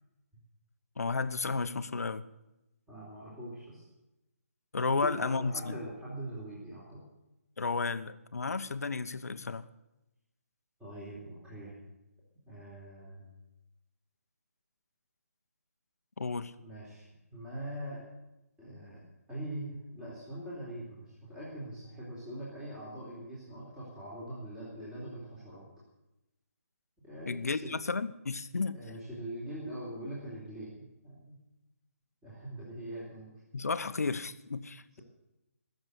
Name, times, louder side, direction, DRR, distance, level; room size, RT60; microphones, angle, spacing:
voice 1, 1.0-2.2 4.7-5.8 7.6-9.7 16.2-16.5 27.3-28.8 33.5-35.0, left 4 dB, 75° left, 12 dB, 0.9 m, -33 dB
voice 2, 2.9-3.8 4.9-7.0 10.8-11.7 12.5-13.2 16.6-18.1 18.6-25.7 27.0-27.8 28.7-31.4 32.2-33.3, right 1 dB, 10° right, -8 dB, 3.9 m, -42 dB
21.0 x 7.1 x 8.0 m, 0.94 s
figure-of-eight pair, 150°, 8 cm